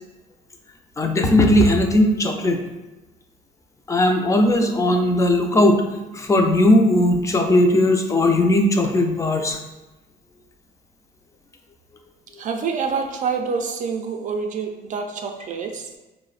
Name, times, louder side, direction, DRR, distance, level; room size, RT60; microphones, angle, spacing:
voice 1, 1.0-2.6 3.9-5.8 6.1-9.6, left 1 dB, 20° left, 4 dB, 0.4 m, -18 dB
voice 2, 12.4-16.0, right 5 dB, 50° right, 4 dB, 0.4 m, -27 dB
4.6 x 2.0 x 2.4 m, 1.1 s
cardioid pair, 110°, 17 cm